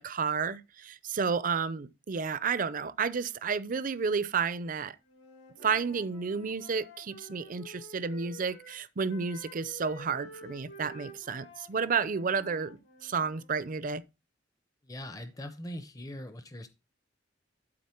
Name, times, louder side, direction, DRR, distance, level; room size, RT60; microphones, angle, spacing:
voice 1, 0.0-5.0 5.6-14.0, right 5 dB, 45° right, 0.5 m, -31 dB
Wind instrument woodwind instrument, 5.1-8.8 9.1-13.5, left 1 dB, 80° left, 2.4 m, -50 dB
voice 2, 14.8-16.7, equal, 20° left, 0.6 m, -41 dB
11.5 x 4.1 x 4.4 m
head